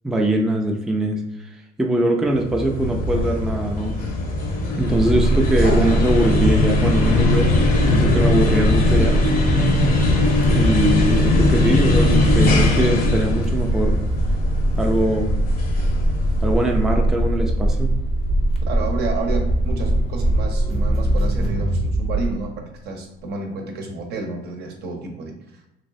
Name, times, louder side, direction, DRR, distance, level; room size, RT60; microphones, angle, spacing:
voice 1, 0.0-1.2 1.8-4.0 4.8-7.5 7.9-9.2 10.5-14.0 14.8-15.3 16.4-17.9, right 1 dB, 5° right, 1 dB, 0.4 m, -22 dB
sound 1, 2.3-16.8, left 2 dB, 55° left, 0.8 m, -20 dB
sound 2, 4.8-21.5, right 1 dB, 80° left, 1.2 m, -22 dB
Crackle, 9.0-22.6, right 2 dB, 35° right, 0.8 m, -30 dB
voice 2, 18.7-25.3, right 3 dB, 70° right, 2 dB, 0.8 m, -30 dB
3.1 x 2.9 x 2.6 m, 0.90 s
cardioid pair, 110°, 17 cm